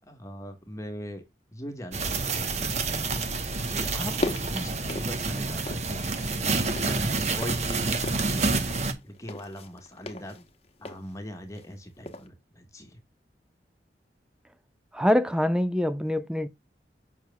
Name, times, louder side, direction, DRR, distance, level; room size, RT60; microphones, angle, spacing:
voice 1, 0.1-1.2 1.5-2.7 3.7-8.0 8.3-8.6 9.0-10.4 10.8-13.0, equal, 20° left, 1.3 m, -40 dB
sound 1, 1.9-8.9, right 3 dB, 40° right, 1.0 m, -28 dB
sound 2, 4.2-5.9 6.2-11.8 12.1-12.3, left 1 dB, 35° left, 1.0 m, -38 dB
voice 2, 14.9-16.5, equal, 5° right, 0.4 m, -24 dB
7.3 x 6.1 x 2.2 m
head